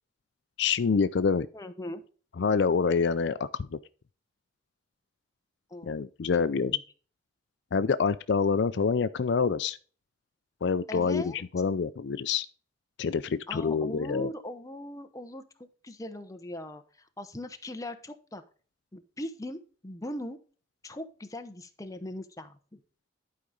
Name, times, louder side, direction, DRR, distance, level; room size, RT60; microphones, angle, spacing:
voice 1, 0.6-1.5 2.4-3.8 5.8-6.8 7.7-9.8 10.6-12.5 13.0-14.3, left 5 dB, 65° left, 0.4 m, -26 dB
voice 2, 1.5-2.0 5.7-5.9 6.6-6.8 10.9-11.4 13.5-15.4 15.8-18.4 18.9-20.4 20.8-22.8, left 1 dB, 20° left, 0.9 m, -40 dB
11.5 x 4.9 x 3.8 m
head